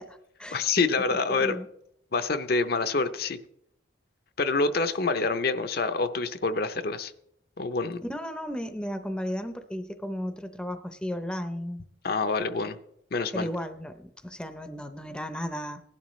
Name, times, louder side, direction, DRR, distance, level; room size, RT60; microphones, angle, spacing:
voice 1, 0.0-0.7 1.3-1.7 8.0-11.8 13.3-15.8, equal, 5° left, 8 dB, 0.6 m, -34 dB
voice 2, 0.5-1.6 2.1-3.4 4.4-7.1 7.6-8.0 12.0-12.8 13.1-13.5, left 3 dB, 50° left, 9 dB, 0.6 m, -26 dB
17.5 x 11.5 x 3.1 m, 0.77 s
head